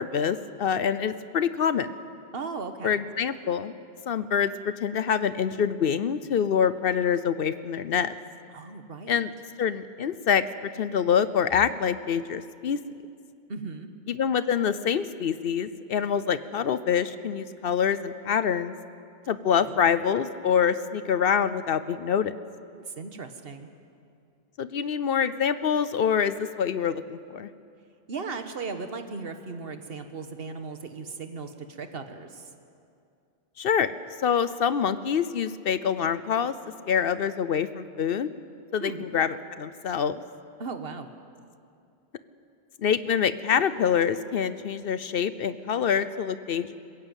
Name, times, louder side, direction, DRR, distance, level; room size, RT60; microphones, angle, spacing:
voice 1, 0.0-1.9 2.8-3.7 4.1-8.2 9.1-9.3 9.6-12.8 14.1-18.8 19.3-22.3 24.6-27.5 33.6-33.9 34.2-36.5 36.9-38.3 38.7-40.2 42.8-46.7, left 7 dB, 60° left, 14 dB, 0.8 m, -26 dB
voice 2, 2.3-2.9 8.5-9.2 13.5-13.9 19.7-19.9 22.9-23.7 28.1-32.5 38.8-39.0 40.6-41.1, right 4 dB, 60° right, 7 dB, 1.5 m, -37 dB
21.5 x 15.0 x 9.0 m, 2.4 s
omnidirectional pair, 1.1 m